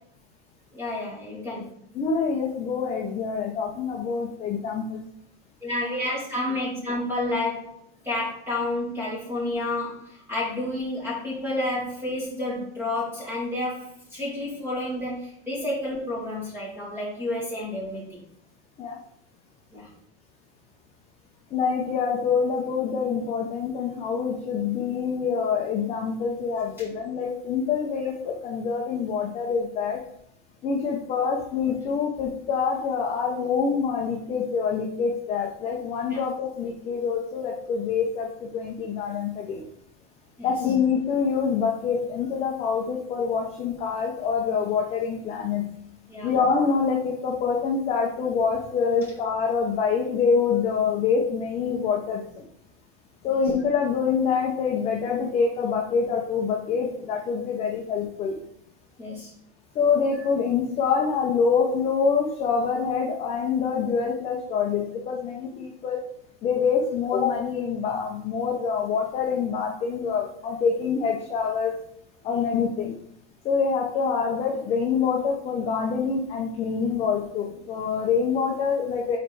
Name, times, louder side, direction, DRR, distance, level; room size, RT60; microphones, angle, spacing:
voice 1, 0.7-1.7 5.6-7.7 8.0-18.2 19.7-19.9 36.1-36.2 40.4-40.5 46.1-46.3 59.0-59.3, left 1 dB, 5° right, -7 dB, 2.4 m, -30 dB
voice 2, 1.9-5.0 18.8-19.0 21.5-30.1 30.6-39.7 40.4-45.8 46.2-52.5 53.2-58.4 59.7-66.0 66.4-71.8 72.2-73.0 73.4-79.2, left 6 dB, 20° left, 1 dB, 0.5 m, -26 dB
4.8 x 4.4 x 4.7 m, 0.68 s
supercardioid pair, 170°, 31 cm